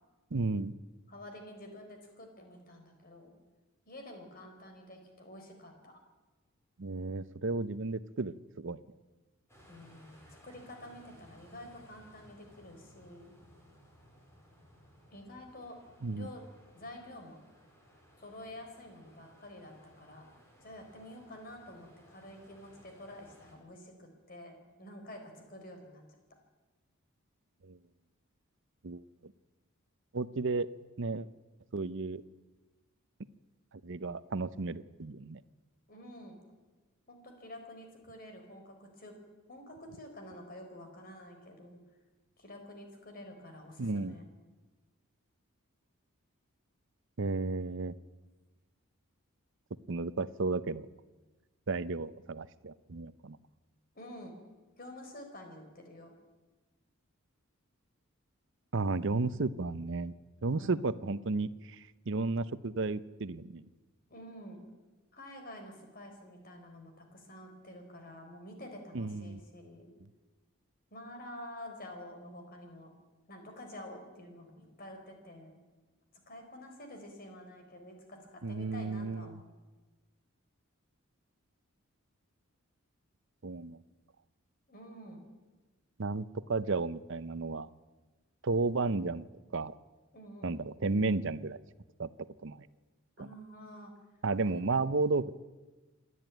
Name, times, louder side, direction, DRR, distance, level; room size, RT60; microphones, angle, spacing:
voice 1, 0.3-0.7 6.8-8.8 16.0-16.3 27.6-27.8 28.8-29.3 30.1-30.7 31.0-31.3 31.7-32.2 33.8-35.4 43.8-44.1 47.2-47.9 49.9-50.9 51.7-53.4 58.7-60.1 60.4-63.6 68.9-69.4 78.4-79.4 83.4-83.8 86.0-87.7 88.4-89.2 89.5-89.7 90.4-91.6 92.0-92.1 92.4-92.7 93.2-93.3 94.2-95.3, right 3 dB, 60° right, 15 dB, 0.7 m, -33 dB
voice 2, 1.1-3.4 3.9-6.0 9.7-13.3 15.1-15.8 16.1-16.4 16.7-17.4 18.2-20.3 20.6-26.0 35.9-36.4 37.1-39.1 39.5-41.8 42.4-44.2 53.9-54.3 54.8-56.1 60.6-60.8 64.1-64.6 65.1-69.9 70.9-72.9 73.3-75.6 76.3-79.5 84.7-85.2 90.1-90.5 93.2-93.9 94.4-94.7, left 1 dB, 45° left, 4 dB, 4.1 m, -49 dB
sound 1, 9.5-23.6, equal, 10° left, 4.4 m, -60 dB
27.0 x 11.0 x 9.1 m, 1.2 s
head